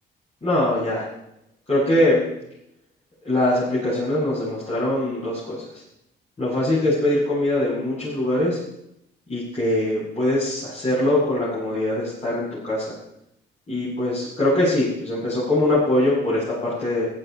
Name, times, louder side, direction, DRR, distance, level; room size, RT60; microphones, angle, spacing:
voice 1, 0.4-1.0 1.7-2.2 3.2-5.6 6.4-8.6 9.3-12.9 13.7-17.0, left 1 dB, 35° left, -9 dB, 7.6 m, -22 dB
15.0 x 13.5 x 4.7 m, 0.79 s
cardioid pair, 90°, 20 cm